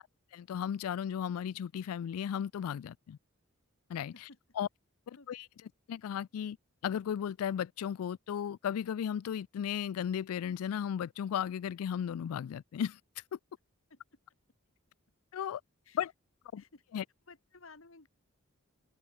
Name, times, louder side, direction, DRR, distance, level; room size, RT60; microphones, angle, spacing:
voice 1, 0.3-3.2 3.9-4.3 4.6-4.7 5.1-5.5 5.9-6.6 6.8-13.0 15.3-15.6 15.9-16.1 16.5-16.6 16.9-17.0, left 8 dB, 85° left, 0.3 m, -35 dB
voice 2, 17.3-18.1, left 3 dB, 65° left, 1.8 m, -55 dB
open air
head